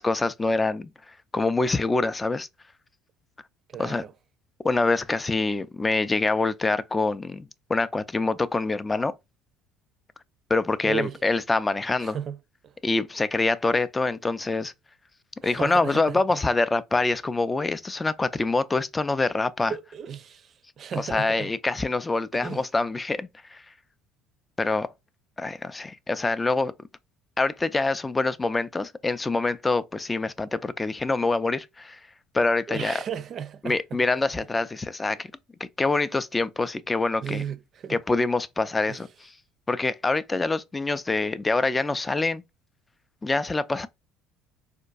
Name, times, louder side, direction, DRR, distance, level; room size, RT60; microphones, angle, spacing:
voice 1, 0.0-2.5 3.8-4.0 4.6-9.1 10.5-12.2 12.8-14.7 15.4-19.7 21.0-23.6 24.6-24.9 25.4-26.7 27.4-32.0 32.3-32.9 33.6-35.3 35.8-37.4 37.9-39.1 39.7-42.4 43.2-43.9, left 3 dB, 20° left, 0.4 m, -25 dB
voice 2, 3.7-4.1 10.8-11.2 12.0-12.4 12.6-12.7 15.4-16.2 19.7-21.5 22.4-22.7 32.7-34.0 37.2-38.0 38.9-39.0, right 8 dB, 50° right, 0.5 m, -35 dB
4.3 x 2.3 x 2.4 m
hypercardioid pair, 70°, 0 cm